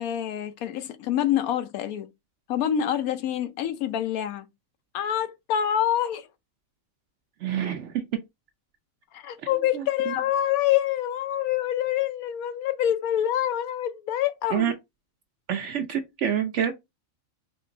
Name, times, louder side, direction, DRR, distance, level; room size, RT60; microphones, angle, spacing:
voice 1, 0.0-2.1 2.5-4.5 4.9-6.3 9.1-14.7, left 11 dB, 90° left, 1.1 m, -26 dB
voice 2, 7.4-8.0 9.7-10.2 14.5-14.7 15.5-16.7, right 9 dB, 65° right, 0.8 m, -27 dB
4.3 x 2.9 x 2.5 m
omnidirectional pair, 1.5 m